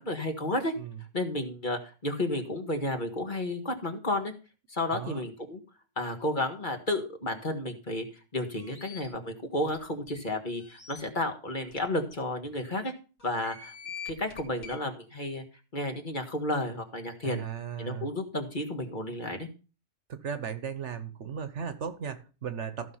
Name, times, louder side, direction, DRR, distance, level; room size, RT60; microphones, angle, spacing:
voice 1, 0.0-0.7 1.1-4.3 4.7-5.6 6.0-8.1 8.3-12.9 13.2-13.7 14.1-15.4 15.7-17.4 17.8-19.5, left 1 dB, 40° left, 5 dB, 1.9 m, -32 dB
voice 2, 4.9-5.2 17.2-18.1 20.1-23.0, right 7 dB, 60° right, 11 dB, 1.3 m, -36 dB
sound 1, 8.6-9.1 9.7-9.8 10.1-10.2 10.6-11.0 11.7-11.8 12.1-12.2 13.2-14.8, left 7 dB, 80° left, 3.0 m, -44 dB
14.5 x 5.8 x 5.6 m, 0.34 s
omnidirectional pair, 1.4 m